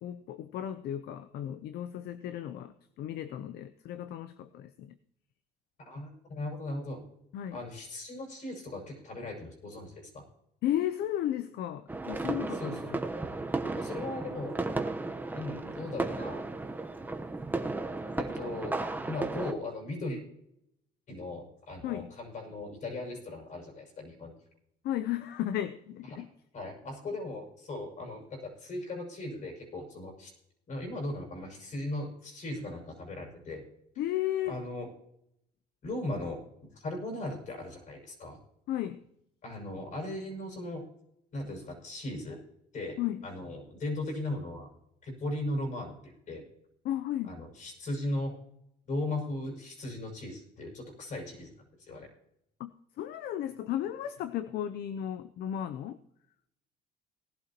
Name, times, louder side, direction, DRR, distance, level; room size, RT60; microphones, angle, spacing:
voice 1, 0.0-4.9 7.3-7.6 10.6-13.0 21.8-22.1 24.8-26.3 34.0-34.6 38.7-39.0 43.0-43.2 46.8-47.4 52.6-52.7 53.0-56.0, left 11 dB, 70° left, 11 dB, 0.6 m, -34 dB
voice 2, 5.8-7.1 7.5-10.2 12.5-12.9 13.7-14.6 15.3-16.4 17.9-20.2 21.1-24.4 26.1-26.2 26.5-30.3 30.7-33.6 34.5-34.9 35.8-36.4 36.7-38.4 39.4-40.9 41.3-42.4 42.7-43.0 43.2-44.7 45.0-46.4 47.3-48.3 48.9-51.5 51.8-52.1, left 1 dB, 50° left, 1 dB, 6.1 m, -38 dB
sound 1, 11.9-19.5, right 2 dB, 10° right, 1.0 m, -34 dB
18.5 x 11.5 x 3.0 m, 0.78 s
cardioid pair, 110°, 17 cm